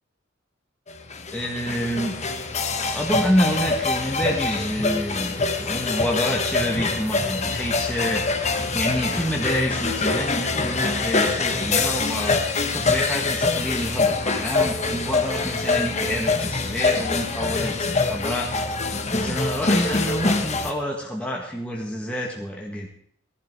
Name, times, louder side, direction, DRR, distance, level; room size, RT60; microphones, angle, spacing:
sound 1, 0.9-20.7, left 3 dB, 35° left, 1.3 m, -25 dB
voice 1, 1.3-2.2 2.9-8.2 8.7-12.4 12.7-18.5 19.1-22.9, equal, 5° left, -2 dB, 1.8 m, -27 dB
17.0 x 11.5 x 4.7 m, 0.65 s
head